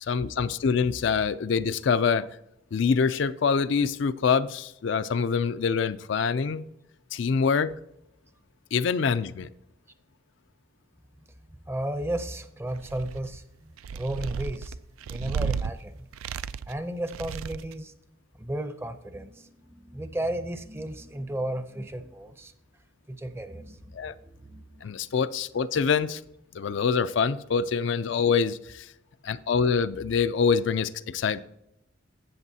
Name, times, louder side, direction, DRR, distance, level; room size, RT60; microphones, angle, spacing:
voice 1, 0.0-2.3 2.7-6.6 7.1-7.7 8.7-9.5 23.9-24.1 24.8-26.2 26.5-28.9 29.2-31.4, left 6 dB, 60° left, 12 dB, 0.4 m, -25 dB
voice 2, 11.7-14.8 15.1-16.0 16.7-17.9 18.4-22.5 23.1-24.9, right 1 dB, 10° right, 10 dB, 0.6 m, -34 dB
sound 1, 12.7-13.4 13.8-15.7 16.1-16.8 17.1-17.8, right 6 dB, 85° right, 0.4 m, -33 dB
13.5 x 8.5 x 2.7 m, 0.83 s
head